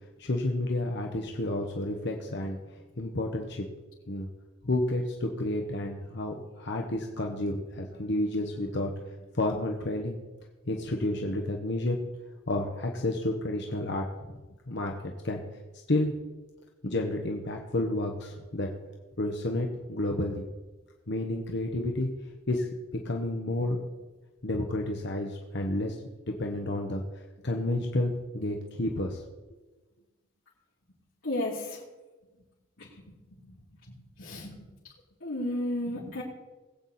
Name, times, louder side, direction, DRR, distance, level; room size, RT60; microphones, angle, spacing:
voice 1, 0.2-2.6 3.0-3.7 4.1-4.3 4.6-10.2 10.7-12.0 12.5-14.4 14.7-14.9 15.2-15.4 15.9-16.1 16.8-18.7 19.2-20.4 21.1-22.1 22.5-23.8 24.4-26.0 26.3-27.0 27.4-29.2, left 1 dB, 55° left, 1 dB, 1.1 m, -30 dB
voice 2, 31.2-31.8 32.8-32.9 33.3-33.6 33.9-34.6 35.2-36.2, left 1 dB, 75° left, -10 dB, 3.4 m, -33 dB
20.5 x 8.3 x 4.2 m, 1.2 s
head